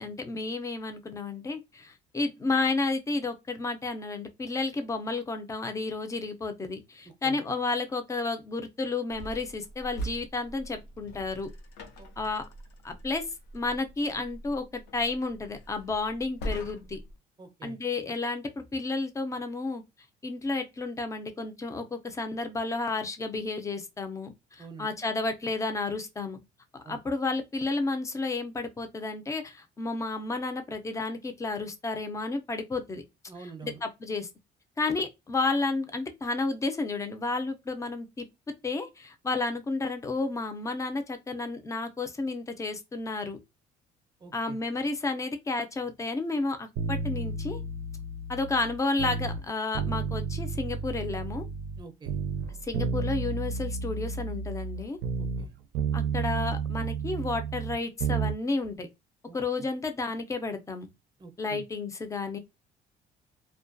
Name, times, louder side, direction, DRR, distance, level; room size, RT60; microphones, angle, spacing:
voice 1, 0.0-11.5 12.2-12.4 12.8-13.2 13.5-17.0 17.6-19.8 20.2-26.4 26.9-33.0 33.6-34.3 34.8-43.4 44.3-47.6 48.3-51.4 52.6-55.0 55.9-58.9 59.3-60.9 61.4-62.4, left 3 dB, 20° left, 0.4 m, -31 dB
voice 2, 7.0-7.4 12.0-12.1 17.4-17.8 24.6-24.9 26.8-27.0 33.3-33.8 44.2-44.6 51.8-52.2 55.2-55.5 59.3-59.7 61.2-61.6, right 5 dB, 25° right, 0.6 m, -46 dB
sound 1, 9.1-17.2, right 1 dB, 85° left, 0.6 m, -42 dB
sound 2, 46.8-49.4 49.7-51.8 52.1-55.5 55.7-58.4 58.7-58.8, right 5 dB, 85° right, 0.4 m, -32 dB
2.2 x 2.2 x 2.5 m
cardioid pair, 110°, 17 cm